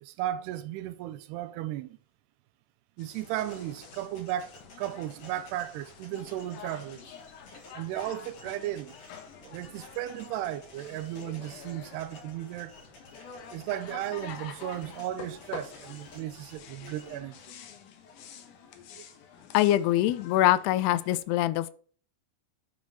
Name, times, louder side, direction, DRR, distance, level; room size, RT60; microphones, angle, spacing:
voice 1, 0.0-2.0 3.0-4.5 4.8-7.1 7.7-8.9 9.4-12.9 13.5-17.4 19.0-19.1, right 13 dB, 80° right, 2.7 m, -35 dB
sound 1, 3.0-21.2, left 6 dB, 65° left, 2.2 m, -48 dB
sound 2, 3.0-17.2, left 2 dB, 50° left, 5.7 m, -54 dB
voice 2, 19.5-21.7, left 14 dB, 85° left, 2.5 m, -24 dB
10.5 x 6.2 x 4.1 m
omnidirectional pair, 4.7 m